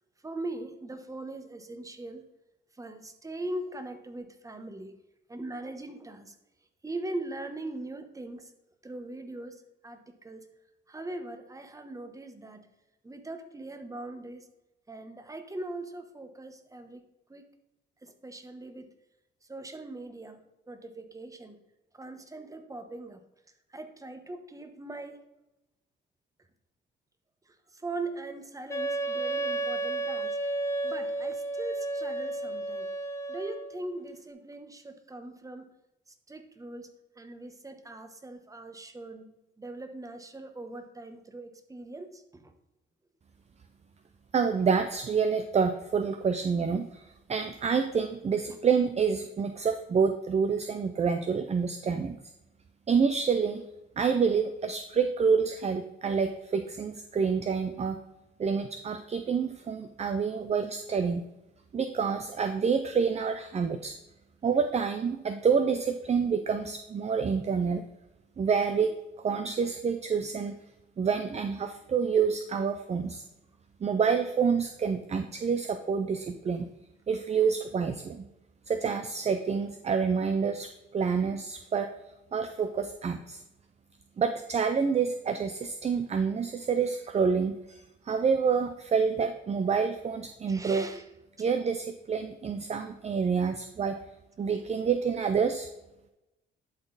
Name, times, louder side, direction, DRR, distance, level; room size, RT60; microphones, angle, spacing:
voice 1, 0.2-2.2 2.8-5.0 5.3-6.3 6.8-8.5 8.8-9.6 9.8-10.5 10.9-12.7 13.0-14.4 14.9-17.0 17.3-17.4 18.0-18.9 19.5-21.6 21.9-23.2 23.7-25.2 27.7-30.4 30.8-32.9 33.3-35.6 36.3-36.9 37.2-42.5 90.5-91.0 91.4-91.5, right 2 dB, 15° right, 7 dB, 1.1 m, -40 dB
Wind instrument woodwind instrument, 28.7-33.8, right 2 dB, 15° left, 0.9 m, -32 dB
voice 2, 44.3-52.1 52.9-53.6 54.0-58.0 58.4-61.2 61.7-63.9 64.4-67.8 68.4-70.6 71.0-73.2 73.8-76.7 77.1-78.2 78.7-81.9 82.3-83.4 84.2-87.8 88.1-90.9 91.4-94.0 94.4-95.7, right 6 dB, 35° right, 8 dB, 0.6 m, -28 dB
11.0 x 3.9 x 4.1 m, 0.94 s
cardioid pair, 90°, 20 cm